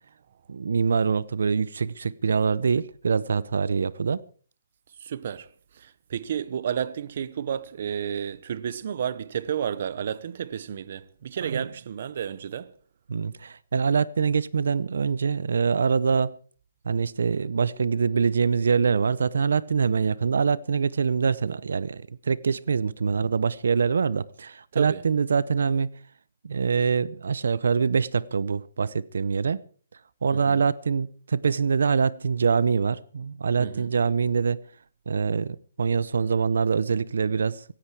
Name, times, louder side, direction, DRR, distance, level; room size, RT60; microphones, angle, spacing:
voice 1, 0.5-4.2 11.4-11.7 13.1-16.3 16.9-25.9 26.4-29.6 30.2-34.6 35.1-37.6, right 5 dB, 70° right, 0.7 m, -24 dB
voice 2, 5.0-5.5 5.8-12.7 24.7-25.0 30.3-30.6 33.6-33.9, right 8 dB, 40° right, 0.8 m, -31 dB
17.5 x 16.5 x 4.7 m
hypercardioid pair, 180°, 0 cm